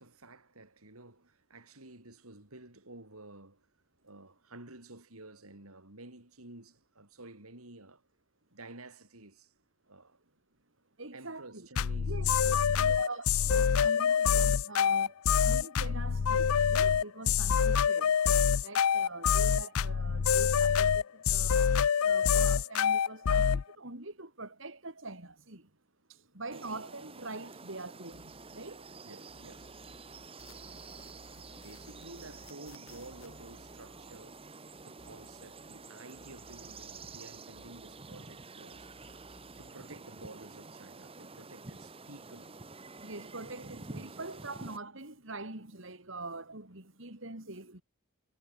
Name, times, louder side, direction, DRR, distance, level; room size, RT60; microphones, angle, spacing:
voice 1, 0.0-3.7 4.0-8.0 8.5-9.5 9.9-10.2 11.1-13.1 18.0-18.1 29.0-29.8 31.3-34.5 34.8-38.9 39.6-42.6 43.5-44.3, right 2 dB, 85° right, 5.9 m, -52 dB
voice 2, 11.0-11.7 12.1-15.2 15.4-21.7 22.0-25.7 26.1-29.0 43.0-47.8, right 2 dB, 60° right, 3.4 m, -44 dB
sound 1, 11.8-23.6, left 7 dB, 85° left, 0.5 m, -26 dB
sound 2, 26.5-44.8, right 3 dB, 25° right, 1.2 m, -49 dB
sound 3, 28.1-29.0 29.3-35.9 36.1-38.4 38.7-39.7, left 2 dB, 65° left, 5.9 m, -59 dB
head